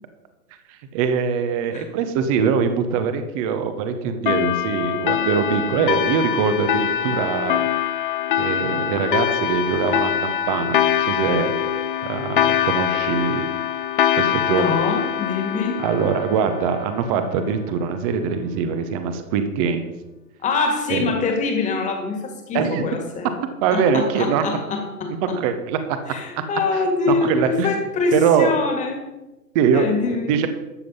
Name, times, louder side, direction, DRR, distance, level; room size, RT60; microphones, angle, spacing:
voice 1, 0.9-7.7 8.4-11.5 12.0-13.5 14.2-14.7 15.8-19.9 20.9-21.1 22.5-22.9 23.6-24.4 25.4-26.0 27.1-27.8 28.1-28.5 29.5-30.0 30.3-30.5, right 6 dB, 25° right, 9 dB, 0.9 m, -22 dB
sound 1, 4.3-17.3, left 10 dB, 35° left, 0.5 m, -23 dB
voice 2, 14.5-15.8 20.4-23.3 23.7-25.4 26.1-29.0 29.7-30.3, left 4 dB, 15° left, 4 dB, 1.9 m, -24 dB
13.0 x 7.7 x 5.4 m, 1.1 s
figure-of-eight pair, 120°, 47 cm